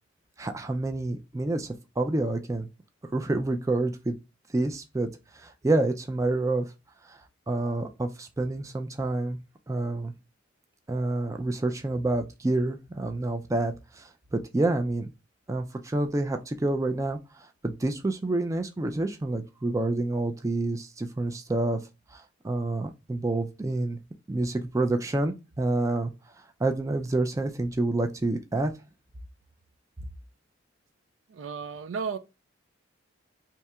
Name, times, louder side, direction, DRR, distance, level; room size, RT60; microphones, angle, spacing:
voice 1, 0.4-2.7 3.1-4.2 4.5-6.7 7.1-7.2 7.5-9.4 9.7-10.1 10.9-15.1 15.5-21.8 22.1-24.0 24.3-26.1 26.4-28.7, right 2 dB, 15° right, 0.3 m, -28 dB
voice 2, 31.3-32.2, right 5 dB, 90° right, 0.4 m, -33 dB
2.8 x 2.3 x 4.1 m
head